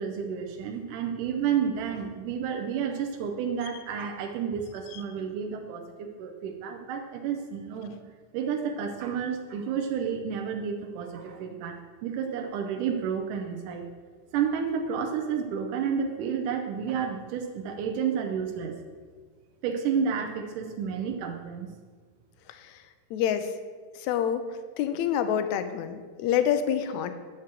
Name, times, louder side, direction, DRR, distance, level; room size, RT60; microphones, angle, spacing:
voice 1, 0.0-7.9 8.3-13.9 14.3-18.8 19.6-21.7, right 7 dB, 85° right, 2 dB, 2.3 m, -31 dB
voice 2, 23.1-23.5 24.0-24.4 24.8-27.1, left 9 dB, 80° left, 9 dB, 1.8 m, -27 dB
9.8 x 4.5 x 7.4 m, 1.6 s
omnidirectional pair, 3.6 m